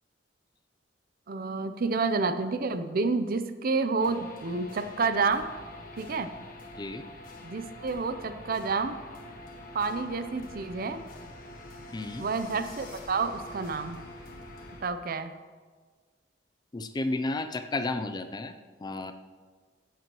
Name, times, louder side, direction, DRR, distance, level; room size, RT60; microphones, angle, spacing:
voice 1, 1.3-5.5 6.0-6.3 7.4-9.0 9.7-11.0 12.2-14.0 14.8-15.3, right 4 dB, 55° right, 10 dB, 0.6 m, -29 dB
sound 1, 4.0-14.8, left 1 dB, 50° left, 1.6 m, -46 dB
voice 2, 11.9-12.3 16.7-19.1, left 2 dB, 25° left, 9 dB, 0.4 m, -32 dB
16.0 x 8.2 x 3.0 m, 1.5 s
head